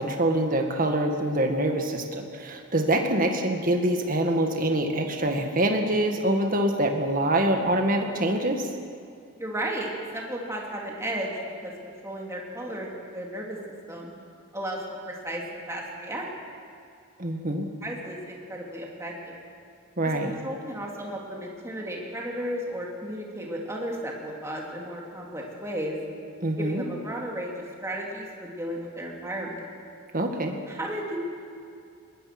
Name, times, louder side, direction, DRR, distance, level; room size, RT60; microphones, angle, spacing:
voice 1, 0.0-8.7 17.2-17.7 20.0-20.4 26.4-26.8 30.1-30.6, right 1 dB, 40° right, 3 dB, 2.0 m, -25 dB
voice 2, 9.4-11.3 11.6-13.6 13.9-14.1 14.5-14.8 15.1-16.3 17.8-19.5 20.2-26.0 26.6-29.6 30.7-31.2, right 1 dB, 15° right, -2 dB, 3.0 m, -34 dB
22.0 x 20.0 x 6.2 m, 2.5 s
head